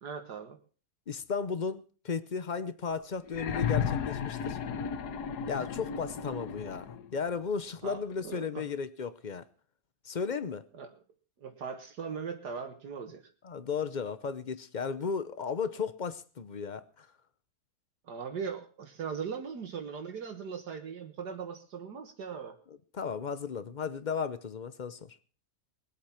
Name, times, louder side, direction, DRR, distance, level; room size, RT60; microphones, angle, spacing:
voice 1, 0.0-0.6 7.8-8.7 10.7-10.9 11.4-13.3 18.0-22.6, right 6 dB, 75° right, 2.0 m, -39 dB
voice 2, 1.1-4.6 5.5-9.4 10.0-10.6 13.4-17.1 22.9-25.2, left 6 dB, 40° left, 0.6 m, -35 dB
sound 1, 3.3-7.1 8.3-8.4, left 7 dB, 75° left, 1.5 m, -34 dB
21.0 x 8.3 x 5.8 m
omnidirectional pair, 1.8 m